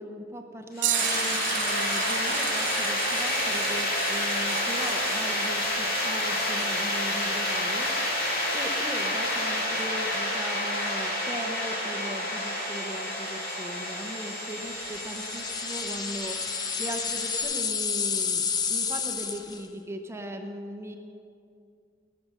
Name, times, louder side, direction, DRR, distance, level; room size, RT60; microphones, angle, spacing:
voice 1, 0.0-8.1 8.5-21.0, equal, 15° right, 4 dB, 0.8 m, -39 dB
sound 1, 0.8-17.4, left 1 dB, 50° left, 2.3 m, -29 dB
sound 2, 0.8-9.0 9.8-9.9 12.1-12.2 13.3-13.4 14.5-14.6, right 13 dB, 80° right, 0.5 m, -35 dB
sound 3, 14.8-19.7, left 6 dB, 20° left, 0.5 m, -30 dB
17.5 x 6.6 x 6.2 m, 2.3 s
head